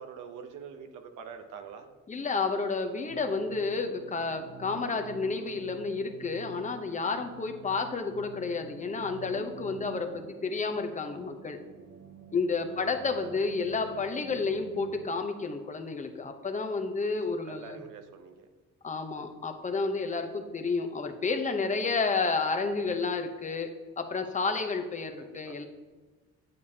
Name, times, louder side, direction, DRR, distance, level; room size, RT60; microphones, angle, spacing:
voice 1, 0.0-1.9 12.7-12.8 13.2-13.4 13.8-14.0 17.0-17.1 17.4-18.5 25.2-25.6, right 7 dB, 90° right, 7 dB, 0.8 m, -45 dB
voice 2, 2.1-11.6 12.3-17.8 18.8-25.7, left 4 dB, 25° left, 5 dB, 0.8 m, -31 dB
sound 1, 3.1-15.1, right 7 dB, 50° right, 0.7 m, -48 dB
8.4 x 6.8 x 2.8 m, 1.3 s
cardioid pair, 90°, 30 cm